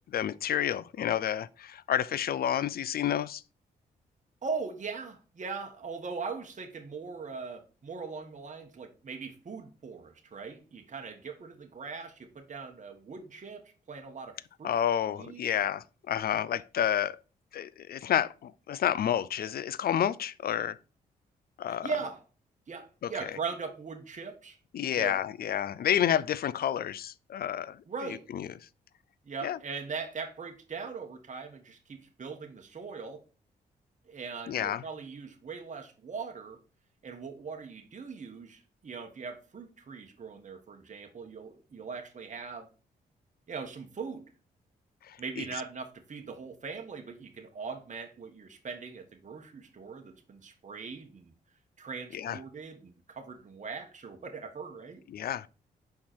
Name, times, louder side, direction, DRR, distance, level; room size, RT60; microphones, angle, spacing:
voice 1, 0.1-3.4 14.6-17.2 17.5-20.8 21.6-21.9 23.0-23.1 24.7-27.8 28.0-28.5 29.4-29.6 34.5-34.8 45.0-45.4 52.1-52.4 55.1-55.5, left 10 dB, 55° left, 0.4 m, -30 dB
voice 2, 4.4-14.7 15.1-15.6 21.7-22.2 22.7-24.6 24.9-25.2 27.9-28.3 29.2-33.2 34.1-36.6 37.0-42.7 43.5-44.2 45.2-51.3 51.8-55.0, right 5 dB, 45° right, 1.3 m, -40 dB
5.8 x 4.3 x 4.3 m
supercardioid pair, 50°, 18 cm